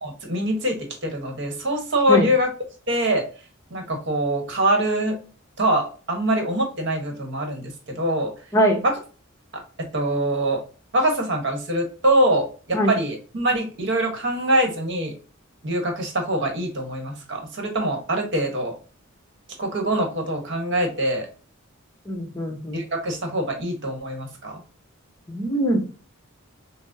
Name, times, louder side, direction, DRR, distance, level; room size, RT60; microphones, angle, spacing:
voice 1, 0.0-2.5 2.9-3.2 3.7-5.2 5.6-8.3 8.8-8.9 9.9-10.6 10.9-15.1 15.6-18.7 19.6-21.3 22.7-24.6, right 1 dB, 55° right, 3 dB, 1.0 m, -24 dB
voice 2, 8.5-8.8 12.7-12.9 22.1-22.8 25.3-25.9, equal, 15° left, 1 dB, 0.7 m, -22 dB
5.9 x 2.0 x 2.6 m, 0.37 s
head